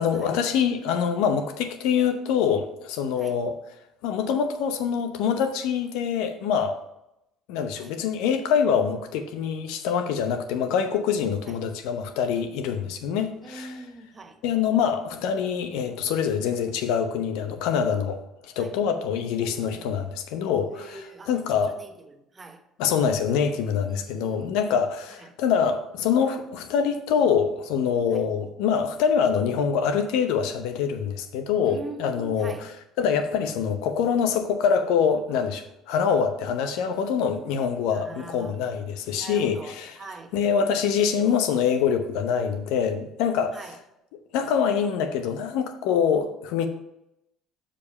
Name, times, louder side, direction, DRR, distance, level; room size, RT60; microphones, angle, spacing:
voice 1, 0.0-3.6 4.0-6.8 7.5-13.8 14.4-21.0 21.3-21.8 22.8-40.0 40.3-43.6 44.3-46.7, left 7 dB, 70° left, 0.8 m, -25 dB
voice 2, 13.4-14.4 18.6-18.7 19.4-19.9 20.7-22.6 23.9-24.6 25.2-25.3 28.1-28.2 31.6-32.7 37.9-38.5 39.1-40.3 43.5-43.8, right 3 dB, 30° right, 1.0 m, -43 dB
6.9 x 5.0 x 5.4 m
hypercardioid pair, 65°, 0 cm